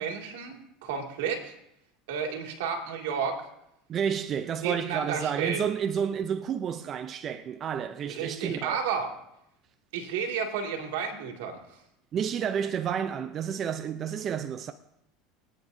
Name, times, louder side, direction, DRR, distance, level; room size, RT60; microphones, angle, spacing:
voice 1, 0.0-1.5 2.1-3.5 4.6-5.6 8.1-9.1 9.9-11.8, right 6 dB, 85° right, 2.3 m, -32 dB
voice 2, 3.9-8.8 12.1-14.7, right 8 dB, 35° right, 0.5 m, -30 dB
24.0 x 9.4 x 2.7 m
supercardioid pair, 125°, 0 cm